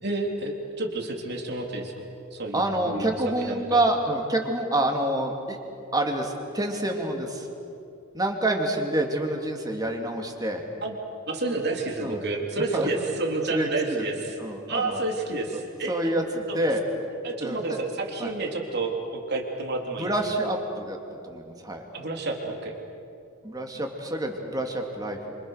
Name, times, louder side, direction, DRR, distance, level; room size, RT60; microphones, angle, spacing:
voice 1, 0.0-3.1 3.4-3.8 10.8-10.9 11.3-14.2 14.7-16.1 16.5-16.6 17.2-20.1 21.9-22.7, right 2 dB, 50° right, 1 dB, 3.5 m, -30 dB
voice 2, 2.5-5.6 5.9-7.5 8.1-10.6 12.0-12.2 12.7-12.9 13.5-14.1 14.4-15.0 15.9-16.8 17.4-17.8 18.2-18.3 19.9-21.0 21.2-21.8 23.4-25.3, right 1 dB, 20° right, 2 dB, 2.8 m, -27 dB
29.0 x 26.5 x 6.6 m, 2.6 s
head